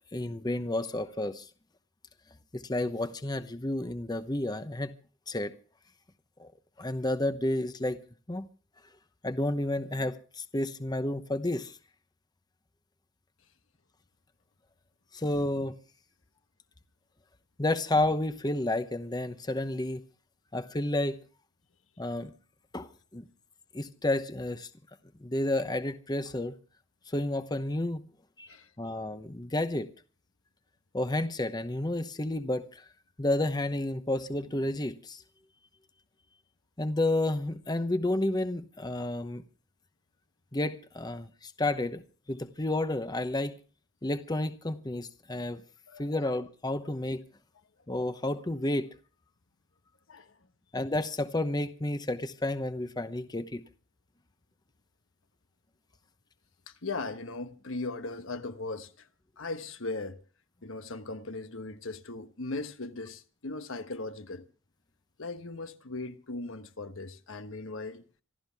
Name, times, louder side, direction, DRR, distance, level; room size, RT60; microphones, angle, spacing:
voice 1, 0.1-1.5 2.5-4.9 5.3-5.5 6.4-6.5 6.8-8.0 8.3-8.5 9.2-11.8 15.1-15.8 17.6-20.0 20.5-21.2 22.0-22.3 22.7-23.3 23.7-24.7 25.2-26.6 27.1-28.0 28.4-28.5 28.8-29.9 30.9-32.8 33.2-35.2 36.8-39.4 40.5-42.0 42.3-43.6 44.0-45.6 46.0-47.2 47.9-48.9 50.7-53.6, left 1 dB, 20° left, 0.8 m, -31 dB
voice 2, 56.7-59.1 59.4-60.2 60.6-64.5 65.2-68.0, left 3 dB, 75° left, 1.2 m, -38 dB
26.5 x 12.5 x 3.5 m
head